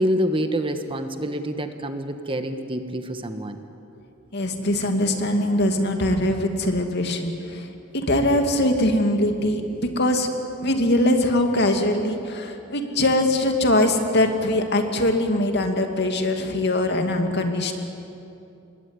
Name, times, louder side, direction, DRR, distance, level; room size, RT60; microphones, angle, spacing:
voice 1, 0.0-3.6, equal, 25° right, 7 dB, 1.3 m, -26 dB
voice 2, 4.3-10.3 10.6-17.7, left 1 dB, 55° left, 4 dB, 2.6 m, -22 dB
26.5 x 21.5 x 9.8 m, 2.7 s
head